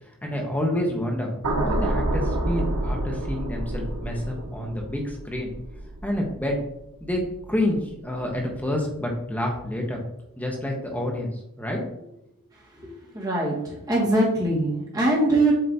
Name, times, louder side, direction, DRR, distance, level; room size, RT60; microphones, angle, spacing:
voice 1, 0.2-1.3 1.6-5.5 6.0-6.6 7.0-7.2 7.5-10.0 10.4-11.3 11.6-12.1, left 1 dB, 5° left, 0 dB, 1.1 m, -28 dB
sound 1, 1.4-7.7 8.1-8.4, right 1 dB, 85° right, 1.0 m, -29 dB
voice 2, 12.8-15.5, right 1 dB, 15° right, -4 dB, 1.7 m, -23 dB
7.8 x 3.1 x 4.1 m, 0.81 s
head